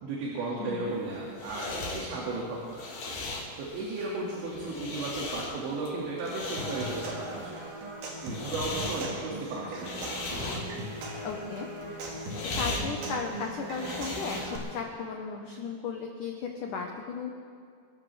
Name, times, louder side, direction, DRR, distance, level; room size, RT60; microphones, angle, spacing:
voice 1, 0.0-2.9 3.6-7.7 8.2-10.1, right 3 dB, 80° right, -5 dB, 4.5 m, -35 dB
voice 2, 0.6-0.9 11.2-12.2 12.5-17.3, left 5 dB, 85° left, 1 dB, 1.8 m, -36 dB
sound 1, 0.9-14.8, left 2 dB, 55° left, 3.8 m, -38 dB
Human voice / Acoustic guitar / Percussion, 6.6-14.6, right 1 dB, 55° right, 3.3 m, -39 dB
27.0 x 14.0 x 3.4 m, 2.2 s
omnidirectional pair, 5.3 m